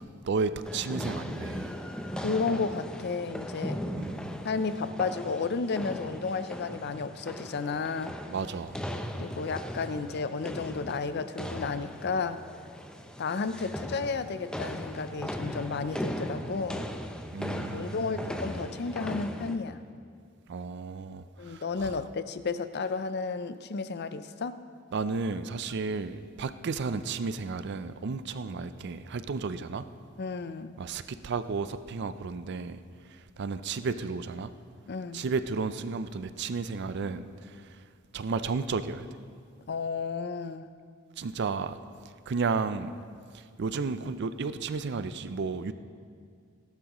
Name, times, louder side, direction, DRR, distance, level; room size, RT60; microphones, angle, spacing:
voice 1, 0.2-1.7 4.0-4.2 8.3-8.8 17.3-18.4 20.5-21.9 24.9-29.9 30.8-32.8 33.4-34.5 35.1-37.5 38.1-39.1 41.2-41.8 42.3-43.0 43.6-45.7, right 4 dB, 60° right, 12 dB, 0.4 m, -33 dB
sound 1, 0.6-19.6, equal, 5° left, 0.6 m, -38 dB
voice 2, 2.1-3.8 4.4-8.2 9.1-12.4 13.2-16.8 17.7-19.8 21.4-24.6 30.2-30.8 34.9-35.3 39.7-40.7, left 4 dB, 55° left, 13 dB, 0.5 m, -32 dB
17.5 x 12.5 x 3.0 m, 2.2 s
head